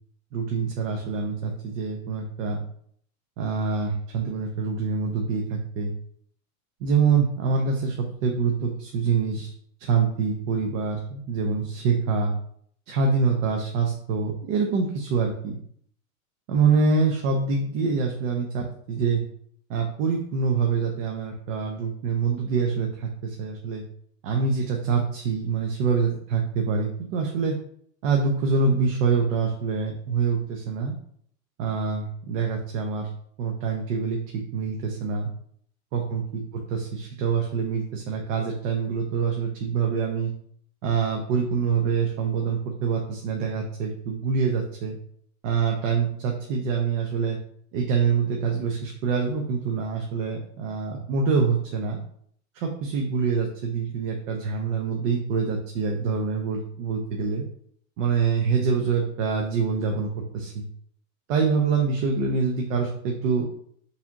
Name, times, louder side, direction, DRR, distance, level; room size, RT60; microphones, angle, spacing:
voice 1, 0.3-2.6 3.4-5.9 6.8-9.5 9.8-12.3 12.9-15.6 16.5-19.2 19.7-23.8 24.2-27.5 28.0-31.0 31.6-33.1 33.4-35.3 35.9-40.3 40.8-45.0 45.4-47.4 47.7-52.0 52.5-57.4 58.0-60.6 61.3-63.5, right 5 dB, 60° right, 1 dB, 0.8 m, -25 dB
4.8 x 3.3 x 2.8 m, 0.64 s
supercardioid pair, 140°, 43 cm